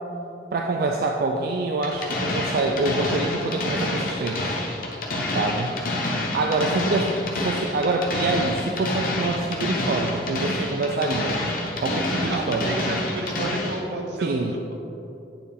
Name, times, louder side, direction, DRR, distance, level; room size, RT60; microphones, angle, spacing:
voice 1, 0.5-4.6 5.3-5.7 6.1-11.4 11.8-12.7 14.2-14.5, right 3 dB, 55° right, 2 dB, 0.3 m, -26 dB
sound 1, 1.8-13.8, left 2 dB, 50° left, 0.8 m, -27 dB
voice 2, 12.3-14.4, right 2 dB, 75° right, 2 dB, 0.8 m, -31 dB
8.8 x 4.7 x 3.4 m, 2.9 s
head